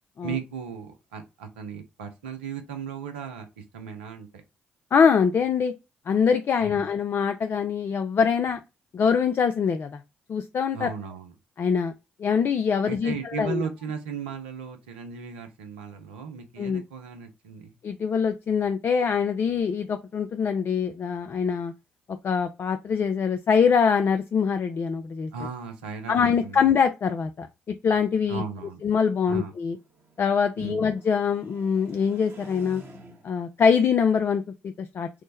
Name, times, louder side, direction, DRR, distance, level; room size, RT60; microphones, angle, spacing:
voice 1, 0.2-4.3 6.6-6.9 10.7-11.3 12.9-17.8 25.3-26.6 28.3-28.8 29.3-29.5 30.6-30.9, right 6 dB, 80° right, 0.5 m, -36 dB
voice 2, 4.9-5.7 6.1-8.6 8.9-10.0 10.3-10.9 11.6-11.9 12.2-13.6 16.6-16.8 17.8-21.7 22.2-25.3 26.1-28.4 28.8-29.8 30.2-32.8 33.2-35.1, left 6 dB, 45° left, 0.3 m, -24 dB
sound 1, 28.7-33.5, right 2 dB, 50° right, 1.0 m, -50 dB
3.2 x 2.0 x 3.3 m
hypercardioid pair, 45°, 6 cm